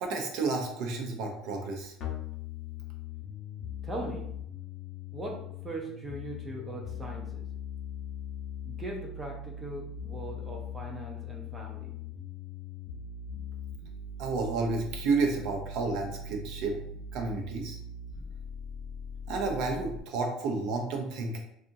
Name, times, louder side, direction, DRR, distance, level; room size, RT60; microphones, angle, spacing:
voice 1, 0.0-2.0 14.2-16.8 17.1-17.8 19.3-21.4, right 3 dB, 65° right, 2 dB, 0.6 m, -31 dB
sound 1, 2.0-20.0, left 5 dB, 45° left, 0.7 m, -40 dB
voice 2, 3.8-4.3 5.1-7.5 8.6-12.0, right 2 dB, 15° right, 0 dB, 0.5 m, -40 dB
2.8 x 2.4 x 2.6 m, 0.73 s
cardioid pair, 145°, 0 cm